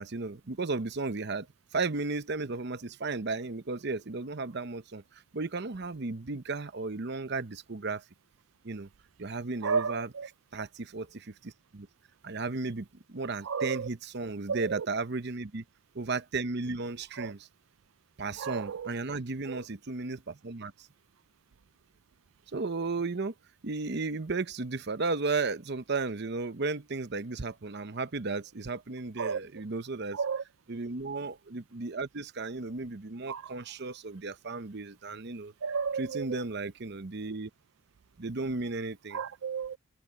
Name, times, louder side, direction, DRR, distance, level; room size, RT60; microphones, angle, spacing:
voice 1, 0.0-1.5 1.7-5.0 5.3-8.0 8.6-8.9 9.2-10.1 10.5-11.9 12.2-15.6 15.9-17.5 18.2-20.7 22.5-23.3 23.6-30.2 30.7-35.5 36.0-37.5 38.2-39.2, right 3 dB, 55° right, 0.9 m, -34 dB
voice 2, 9.6-10.3 13.4-13.9 14.5-14.9 17.2-17.3 18.4-18.9 19.4-19.6 29.2-29.6 30.1-30.4 33.3-33.5 35.6-36.4 39.1-39.8, right 5 dB, 75° right, 0.5 m, -33 dB
head